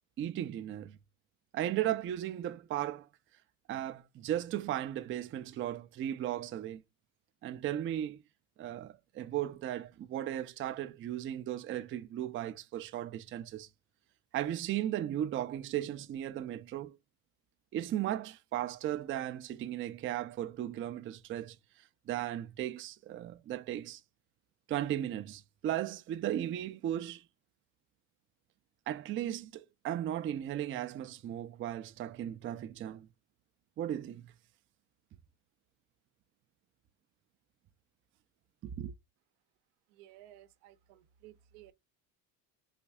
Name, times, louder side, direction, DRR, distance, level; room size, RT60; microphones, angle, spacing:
voice 1, 0.2-1.0 1.5-3.1 3.7-6.8 7.4-8.2 8.6-13.7 14.3-17.0 17.7-21.6 22.1-24.0 24.7-27.2 28.9-33.1 33.8-34.3 38.6-38.9, right 12 dB, 30° right, 0.4 m, -36 dB
voice 2, 39.9-41.7, right 13 dB, 85° right, 0.7 m, -56 dB
4.2 x 2.6 x 2.2 m
supercardioid pair, 100°, 40 cm